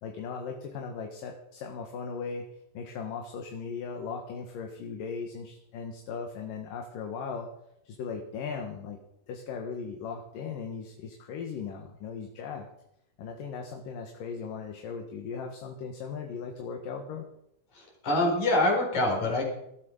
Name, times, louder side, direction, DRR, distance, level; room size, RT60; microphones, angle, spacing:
voice 1, 0.0-2.5 2.7-7.5 7.8-9.0 9.3-12.7 13.2-17.2, left 5 dB, 70° left, 3 dB, 3.2 m, -38 dB
voice 2, 17.7-19.4, left 1 dB, 50° left, 1 dB, 5.7 m, -25 dB
19.0 x 13.0 x 5.4 m, 0.77 s
omnidirectional pair, 4.3 m